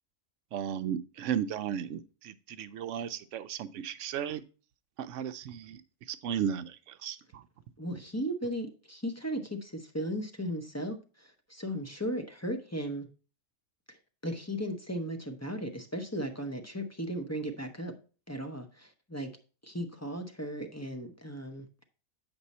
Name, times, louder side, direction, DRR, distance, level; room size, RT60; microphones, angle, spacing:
voice 1, 0.5-4.4 5.0-5.8 6.1-7.4, right 8 dB, 70° right, 12 dB, 0.9 m, -35 dB
voice 2, 7.8-13.1 13.9-14.0 14.2-17.9 18.3-19.3 19.6-21.8, equal, 15° left, 5 dB, 0.6 m, -36 dB
7.9 x 5.4 x 4.1 m, 0.36 s
omnidirectional pair, 1.4 m